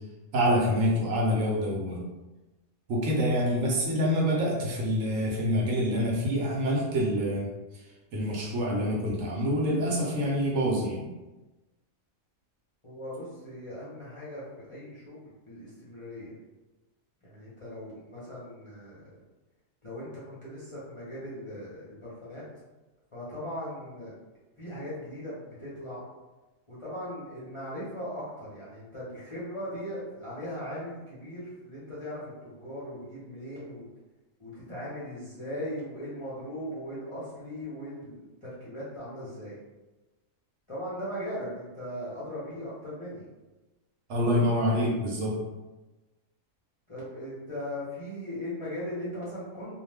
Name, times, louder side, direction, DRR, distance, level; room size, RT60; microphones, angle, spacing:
voice 1, 0.3-2.0 2.9-7.5 8.1-11.1 44.1-45.4, equal, 75° right, -2 dB, 1.0 m, -26 dB
voice 2, 12.8-16.3 17.2-19.1 19.8-22.4 23.1-24.1 24.6-26.0 26.7-33.9 34.4-39.6 40.7-43.2 46.9-49.7, equal, 35° left, -10 dB, 0.6 m, -39 dB
2.4 x 2.1 x 3.3 m, 1.1 s
omnidirectional pair, 1.4 m